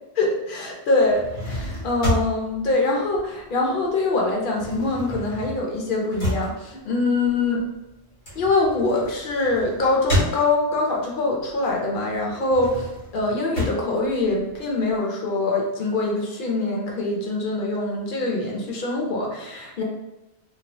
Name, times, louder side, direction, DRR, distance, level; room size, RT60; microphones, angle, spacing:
voice 1, 0.2-7.7 8.3-19.8, left 2 dB, 55° left, -2 dB, 0.8 m, -24 dB
sound 1, 1.0-3.8 4.1-10.9 11.4-14.9, equal, 85° left, 1.4 m, -30 dB
2.7 x 2.0 x 2.9 m, 0.95 s
omnidirectional pair, 1.1 m